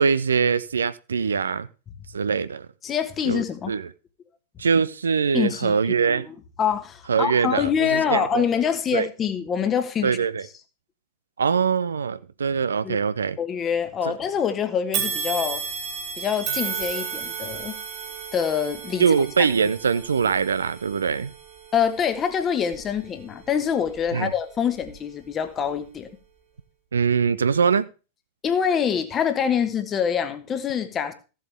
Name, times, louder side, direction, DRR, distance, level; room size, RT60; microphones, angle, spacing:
voice 1, 0.0-1.7 2.1-2.7 3.3-3.9 4.6-6.3 7.1-8.5 8.9-9.1 10.0-10.5 11.4-13.4 14.1-14.2 19.0-21.3 24.1-24.3 26.9-27.9, right 6 dB, 70° right, 0.4 m, -23 dB
voice 2, 2.8-3.7 5.3-10.1 12.8-13.0 13.4-15.6 16.2-17.8 18.3-19.1 21.7-26.1 28.4-31.1, left 7 dB, 25° left, 1.3 m, -25 dB
sound 1, 14.9-24.2 24.8-24.9 25.9-26.0, right 7 dB, 45° right, 2.1 m, -34 dB
15.0 x 7.6 x 3.4 m
figure-of-eight pair, 90°, 0 cm